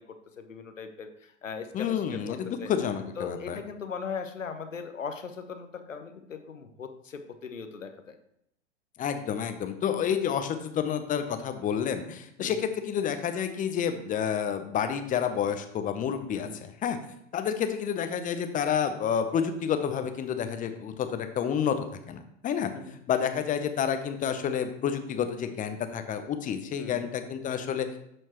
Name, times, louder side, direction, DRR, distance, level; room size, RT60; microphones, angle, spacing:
voice 1, 0.0-2.7 3.2-8.1 12.4-12.6 16.4-16.6 22.7-23.0 26.8-27.1, left 6 dB, 90° left, 7 dB, 1.0 m, -39 dB
voice 2, 1.7-3.6 9.0-17.0 17.3-21.8 22.1-22.7 23.1-28.0, left 8 dB, 20° left, 8 dB, 0.7 m, -29 dB
12.5 x 4.5 x 3.0 m, 0.75 s
hypercardioid pair, 100°, 37 cm